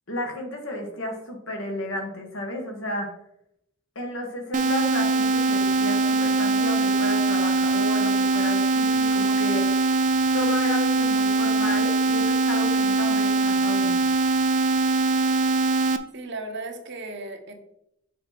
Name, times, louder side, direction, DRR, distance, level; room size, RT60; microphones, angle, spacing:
voice 1, 0.1-3.1 3.9-9.7 10.3-14.1, left 1 dB, 70° left, 2 dB, 1.6 m, -32 dB
sound 1, 4.5-16.0, right 3 dB, 40° right, 0.4 m, -22 dB
voice 2, 16.1-17.5, right 2 dB, 60° right, 5 dB, 1.0 m, -35 dB
6.6 x 4.2 x 4.3 m, 0.78 s
head